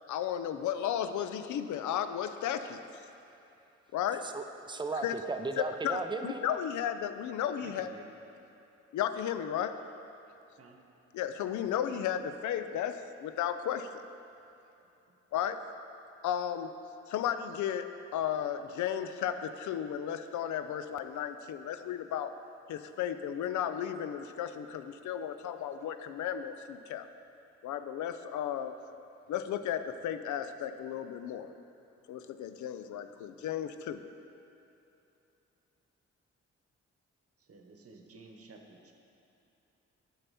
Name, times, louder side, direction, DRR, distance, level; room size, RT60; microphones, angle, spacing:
voice 1, 0.1-3.0 3.9-4.3 5.0-5.2 5.6-7.9 8.9-9.7 11.1-14.0 15.3-15.6 16.2-16.7 17.1-17.9 18.1-22.3 22.7-27.1 27.6-28.8 29.3-31.5 32.1-34.0, left 9 dB, 80° left, 10 dB, 0.4 m, -34 dB
voice 2, 4.1-6.6, right 3 dB, 15° right, 6 dB, 0.5 m, -36 dB
voice 3, 7.6-8.1 10.6-10.8 37.4-38.9, right 3 dB, 50° right, 3 dB, 1.0 m, -53 dB
8.9 x 5.7 x 4.2 m, 2.8 s
cardioid pair, 60°, 29 cm